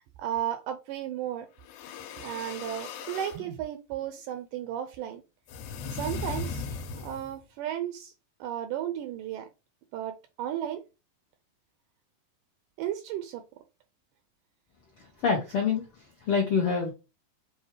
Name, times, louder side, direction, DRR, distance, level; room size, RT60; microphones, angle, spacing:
voice 1, 0.2-1.5 2.2-5.2 5.9-6.6 7.0-8.1 8.4-9.5 9.9-10.8 12.8-13.4, right 11 dB, 80° right, 1.9 m, -34 dB
sound 1, 1.6-3.4 5.5-7.4, left 4 dB, 90° left, 2.6 m, -37 dB
voice 2, 15.0-16.9, left 5 dB, 70° left, 1.3 m, -27 dB
7.0 x 2.4 x 3.1 m
omnidirectional pair, 4.1 m